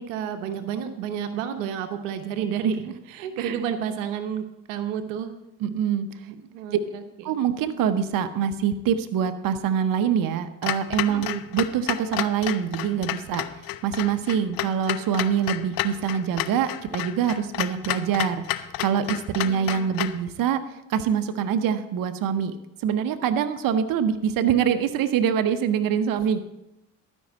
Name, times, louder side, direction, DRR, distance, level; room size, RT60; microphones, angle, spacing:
voice 1, 0.0-2.8 3.1-5.3 6.2-7.0 11.1-11.4 19.4-19.9, right 8 dB, 90° right, 8 dB, 0.9 m, -31 dB
voice 2, 5.6-6.3 7.2-11.3 11.5-13.4 13.8-22.5 22.8-26.4, right 8 dB, 60° right, 9 dB, 0.9 m, -25 dB
Clock, 10.6-20.2, left 15 dB, 65° left, 0.7 m, -31 dB
12.5 x 5.4 x 7.4 m, 0.91 s
hypercardioid pair, 60°, 37 cm